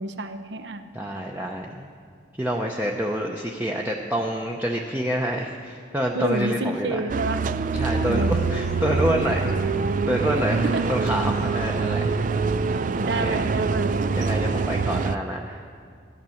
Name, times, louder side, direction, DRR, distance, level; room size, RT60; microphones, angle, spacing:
voice 1, 0.0-0.9 6.1-7.5 8.1-8.6 10.6-10.8 13.0-14.0, right 2 dB, 70° right, 9 dB, 0.8 m, -29 dB
voice 2, 0.9-1.9 2.4-7.0 7.7-9.5 10.1-12.0 12.7-13.4 14.1-15.6, equal, 10° right, -1 dB, 0.7 m, -27 dB
sound 1, 7.1-15.2, right 4 dB, 45° right, 0.3 m, -25 dB
sound 2, 7.8-14.6, left 3 dB, 40° left, 0.5 m, -38 dB
13.5 x 9.3 x 7.1 m, 2.2 s
head